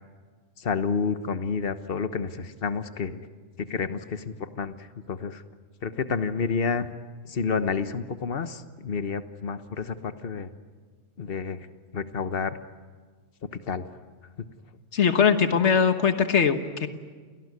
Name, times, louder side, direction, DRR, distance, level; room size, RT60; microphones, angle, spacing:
voice 1, 0.6-3.2 3.6-4.7 5.1-5.4 5.8-6.9 7.3-10.5 11.2-11.7 11.9-12.6 13.7-13.9, left 5 dB, 55° left, 10 dB, 1.3 m, -29 dB
voice 2, 14.9-16.9, left 6 dB, 75° left, 8 dB, 1.7 m, -21 dB
29.5 x 18.5 x 9.7 m, 1.5 s
omnidirectional pair, 1.2 m